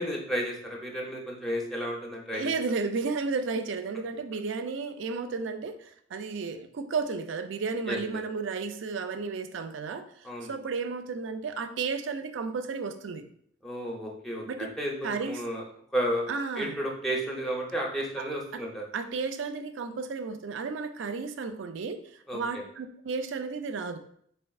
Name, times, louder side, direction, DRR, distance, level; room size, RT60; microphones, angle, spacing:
voice 1, 0.0-2.5 7.9-8.0 10.2-10.5 13.6-15.6 15.9-16.3 16.6-18.8 22.3-22.6, equal, ahead, -1 dB, 0.6 m, -32 dB
voice 2, 2.3-13.2 14.5-14.7 15.0-15.4 16.3-16.8 18.2-18.3 18.5-18.6 18.9-22.0 22.3-24.0, right 4 dB, 65° right, 9 dB, 0.4 m, -33 dB
4.3 x 4.2 x 2.3 m, 0.65 s
head